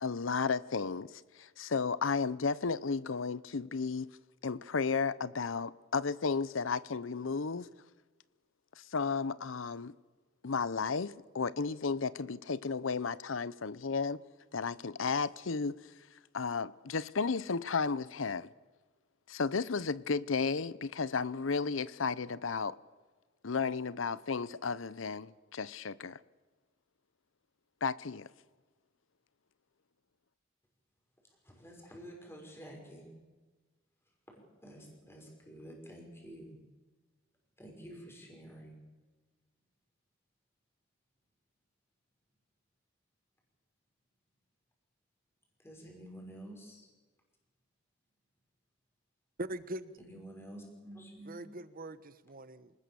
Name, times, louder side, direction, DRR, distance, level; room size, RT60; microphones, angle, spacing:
voice 1, 0.0-4.1 4.4-7.7 8.8-9.9 10.4-14.2 14.5-15.8 16.3-18.5 19.3-22.8 23.4-26.2 27.8-28.3, left 5 dB, 80° left, 0.7 m, -33 dB
voice 2, 31.2-33.1 34.0-36.6 37.6-38.8 45.6-46.9 50.0-51.5, right 1 dB, 15° left, 5.8 m, -50 dB
voice 3, 49.4-50.0 51.3-52.7, right 1 dB, 45° right, 1.1 m, -42 dB
27.0 x 19.0 x 7.0 m
head